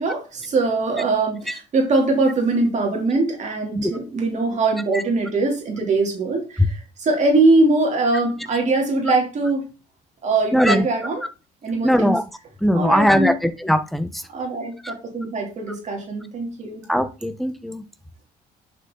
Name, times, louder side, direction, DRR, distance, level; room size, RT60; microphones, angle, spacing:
voice 1, 0.0-9.7 10.2-11.2 11.6-12.1 12.7-13.3 14.3-16.9, right 3 dB, 45° right, 3.4 m, -22 dB
voice 2, 10.5-10.9 11.8-12.2 12.6-14.2 14.8-14.9 16.9-17.8, equal, ahead, 1.1 m, -20 dB
10.5 x 6.7 x 4.0 m
cardioid pair, 110°, 17 cm